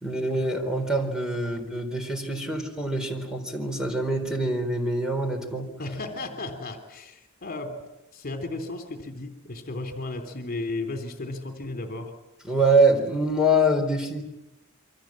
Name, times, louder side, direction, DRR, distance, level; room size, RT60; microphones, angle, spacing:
voice 1, 0.0-5.7 12.4-14.2, right 1 dB, 5° right, 4 dB, 4.1 m, -24 dB
voice 2, 5.8-7.8 8.1-12.1, left 2 dB, 45° left, 6 dB, 3.2 m, -34 dB
28.0 x 24.5 x 7.6 m, 0.96 s
head